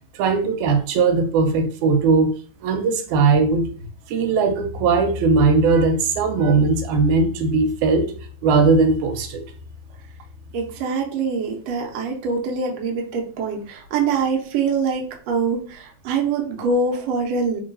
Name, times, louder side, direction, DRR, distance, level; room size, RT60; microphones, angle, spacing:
voice 1, 0.2-2.3 2.6-3.7 4.1-8.1 8.4-9.4, right 4 dB, 90° right, 5 dB, 2.0 m, -19 dB
voice 2, 10.5-17.6, right 4 dB, 75° right, 0 dB, 1.7 m, -24 dB
3.8 x 3.6 x 2.6 m, 0.42 s
omnidirectional pair, 3.4 m